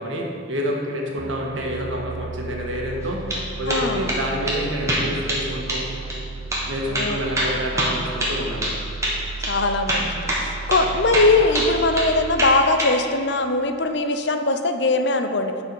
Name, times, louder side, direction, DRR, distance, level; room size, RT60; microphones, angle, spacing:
voice 1, 0.0-3.2 3.6-5.9 6.6-8.7, equal, 80° right, 0 dB, 1.5 m, -28 dB
sound 1, 1.2-13.9, right 4 dB, 65° right, 0.5 m, -35 dB
sound 2, 3.0-3.4 3.7-4.2 4.5-4.6 4.9-5.4 5.7-5.8 6.1-6.2 6.5-6.7 6.9-8.8 9.0-9.2 9.4-9.5 9.9-10.4 10.7-10.9 11.1-12.1 12.4-12.9, right 1 dB, 15° right, 1.4 m, -24 dB
voice 2, 3.7-4.1 6.9-7.6 9.5-15.5, left 2 dB, 65° left, 7 dB, 0.6 m, -21 dB
11.0 x 4.9 x 6.1 m, 2.4 s
head